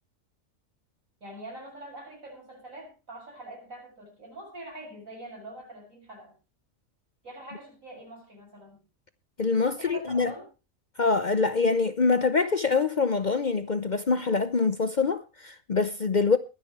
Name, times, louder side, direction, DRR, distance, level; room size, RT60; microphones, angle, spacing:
voice 1, 1.2-6.4 7.2-8.8 9.7-10.5, right 1 dB, 80° right, 7.7 m, -44 dB
voice 2, 9.4-10.3 11.0-16.4, left 4 dB, 45° left, 0.7 m, -25 dB
22.5 x 9.9 x 3.2 m
omnidirectional pair, 1.4 m